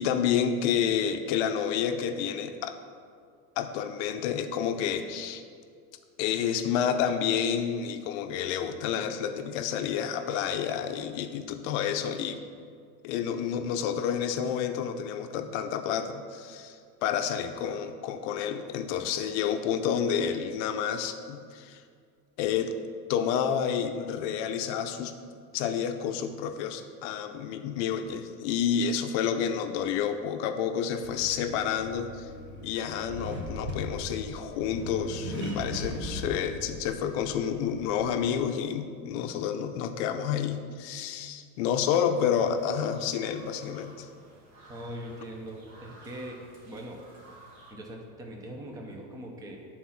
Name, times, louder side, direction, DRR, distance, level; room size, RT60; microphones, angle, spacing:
voice 1, 0.0-2.8 3.6-5.4 6.2-12.4 13.0-21.8 22.4-22.8 23.1-25.2 25.5-32.3 32.6-44.1, left 8 dB, 50° left, 7 dB, 0.6 m, -29 dB
Accelerating revving vroom, 31.0-38.4, equal, 25° right, 1.1 m, -39 dB
sound 1, 41.8-47.7, right 1 dB, 80° right, 2.1 m, -53 dB
voice 2, 44.7-46.4 46.7-47.0 47.7-49.6, right 1 dB, 10° right, 1 dB, 0.5 m, -41 dB
10.5 x 4.2 x 5.7 m, 2.2 s
supercardioid pair, 150°, 49 cm